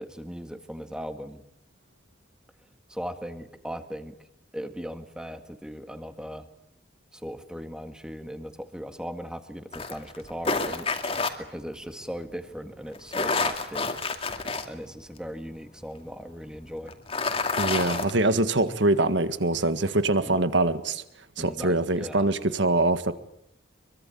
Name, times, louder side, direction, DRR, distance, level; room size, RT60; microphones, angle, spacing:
voice 1, 0.0-1.4 2.9-4.1 4.5-6.5 7.1-11.0 11.4-13.9 14.7-16.9 20.2-20.4 21.4-22.3, equal, 5° right, 1.9 m, -38 dB
sound 1, 9.7-11.3 13.0-14.7 15.2-15.3 16.9-18.1, left 4 dB, 30° left, 2.4 m, -28 dB
voice 2, 17.6-21.0 21.4-23.1, right 2 dB, 65° right, 1.7 m, -24 dB
25.0 x 23.5 x 9.2 m
head